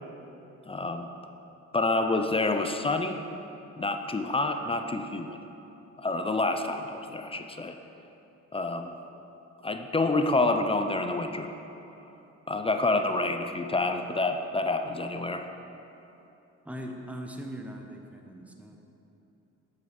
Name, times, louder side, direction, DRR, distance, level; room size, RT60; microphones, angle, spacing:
voice 1, 0.7-1.1 1.7-3.2 3.8-5.4 6.0-7.8 8.5-8.9 9.6-11.5 12.5-15.4, left 2 dB, 20° left, 6 dB, 0.6 m, -28 dB
voice 2, 16.6-18.8, equal, 5° right, 2 dB, 1.0 m, -40 dB
7.9 x 7.9 x 5.2 m, 3.0 s
cardioid pair, 90°, 30 cm